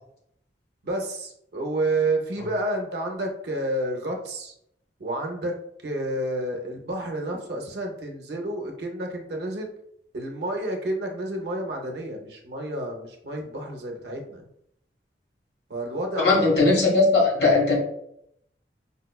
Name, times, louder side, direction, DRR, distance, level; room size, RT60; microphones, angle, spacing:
voice 1, 0.8-4.5 5.0-5.6 5.8-9.7 10.1-14.5 15.7-16.4, right 1 dB, 65° right, 2 dB, 0.6 m, -30 dB
voice 2, 16.2-17.8, left 3 dB, 65° left, -3 dB, 1.2 m, -19 dB
5.0 x 2.1 x 2.2 m, 0.75 s
head